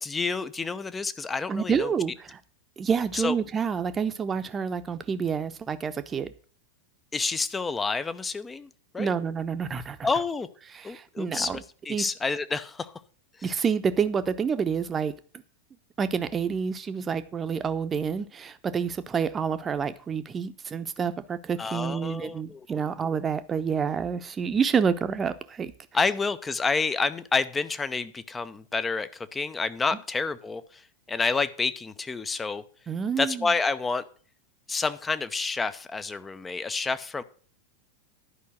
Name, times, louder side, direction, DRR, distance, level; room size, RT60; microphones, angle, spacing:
voice 1, 0.0-1.9 3.1-3.3 7.1-9.1 10.0-10.5 10.8-12.9 21.6-22.8 25.9-30.8 31.1-32.6 33.2-34.0 34.7-37.2, left 4 dB, 15° left, 0.7 m, -29 dB
voice 2, 1.5-2.4 2.8-6.3 9.0-10.0 10.7-11.6 11.9-12.0 13.4-15.1 16.0-25.7 32.9-33.5, right 6 dB, 20° right, 0.9 m, -28 dB
11.5 x 5.5 x 7.7 m
figure-of-eight pair, 90°, 0 cm